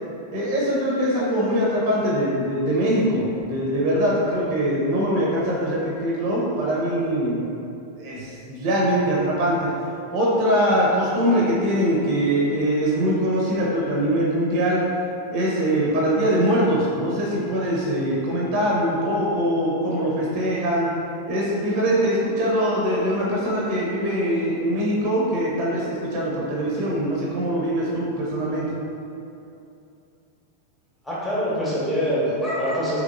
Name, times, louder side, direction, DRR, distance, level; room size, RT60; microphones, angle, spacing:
voice 1, 0.3-7.4 8.0-9.7 10.1-14.8 15.3-20.9 21.3-28.7, equal, 45° right, -4 dB, 0.7 m, -22 dB
voice 2, 31.0-33.0, equal, 10° left, -8 dB, 1.0 m, -24 dB
3.5 x 3.0 x 2.6 m, 2.7 s
figure-of-eight pair, 90°, 0 cm